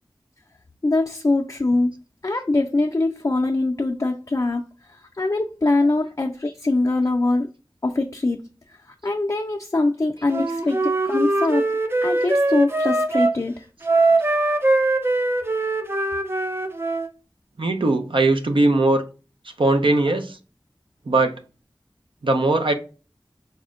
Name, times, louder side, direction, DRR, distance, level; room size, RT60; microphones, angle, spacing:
voice 1, 0.8-1.9 2.2-4.6 4.9-7.5 7.8-8.4 9.0-11.7 12.0-13.7, left 2 dB, 40° left, 0.4 m, -22 dB
Wind instrument woodwind instrument, 10.3-13.4 13.8-17.1, right 2 dB, 30° right, 0.4 m, -22 dB
voice 2, 17.6-19.0 19.6-20.4 21.1-21.4 22.2-22.7, right 2 dB, 80° right, 0.5 m, -20 dB
4.2 x 2.1 x 3.5 m
wide cardioid pair, 50°, 9 cm